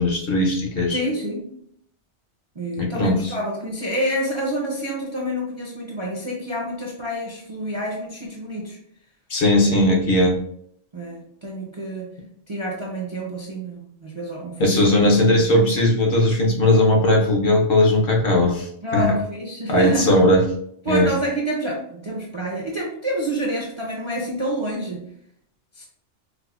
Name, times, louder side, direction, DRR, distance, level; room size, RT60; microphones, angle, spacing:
voice 1, 0.0-1.0 2.8-3.3 9.3-10.4 14.6-19.1 19.7-20.4 20.9-21.1, left 1 dB, 55° left, 0 dB, 0.8 m, -18 dB
voice 2, 0.9-1.5 2.6-8.8 10.9-12.1 12.5-15.1 15.4-15.5 18.8-20.1 20.8-25.1 25.7-25.8, right 1 dB, 40° right, -3 dB, 0.4 m, -28 dB
4.7 x 2.1 x 2.3 m, 0.68 s
omnidirectional pair, 1.2 m